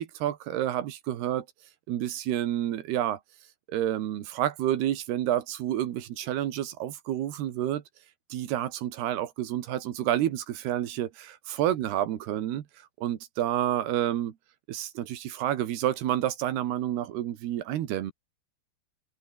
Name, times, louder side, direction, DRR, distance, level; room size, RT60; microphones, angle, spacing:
voice 1, 0.0-1.5 1.9-3.2 3.7-7.8 8.3-12.7 13.0-14.3 14.7-18.1, right 12 dB, 80° right, 3.7 m, -29 dB
omnidirectional pair, 4.5 m